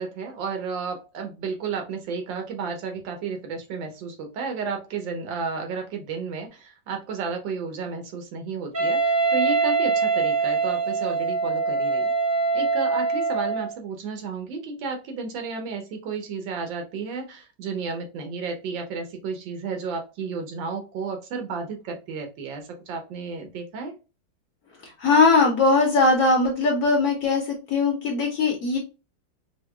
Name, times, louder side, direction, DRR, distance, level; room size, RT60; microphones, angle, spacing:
voice 1, 0.0-12.1 12.5-23.9, right 5 dB, 85° right, 4 dB, 1.6 m, -32 dB
Wind instrument woodwind instrument, 8.7-13.7, right 4 dB, 30° right, 1.2 m, -23 dB
voice 2, 24.8-28.8, left 3 dB, 60° left, 0 dB, 1.2 m, -20 dB
4.6 x 2.2 x 2.2 m, 0.30 s
omnidirectional pair, 2.0 m